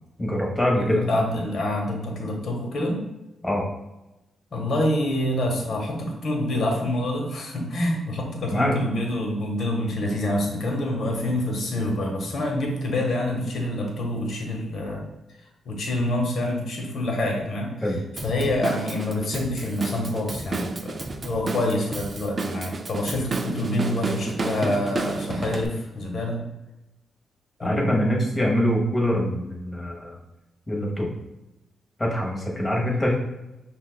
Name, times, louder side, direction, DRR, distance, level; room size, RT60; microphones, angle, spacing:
voice 1, 0.2-1.1 3.4-3.7 8.5-8.8 17.8-18.0 27.6-30.2 30.7-31.1 32.0-33.2, equal, 20° left, -2 dB, 1.1 m, -24 dB
voice 2, 0.8-3.0 4.5-15.1 15.7-17.7 18.2-26.4 27.6-28.1, left 1 dB, 60° left, 0 dB, 1.0 m, -27 dB
Drum kit / Drum, 18.2-25.7, right 3 dB, 35° right, 0.3 m, -31 dB
5.6 x 2.3 x 2.3 m, 0.95 s
cardioid pair, 80°, 0 cm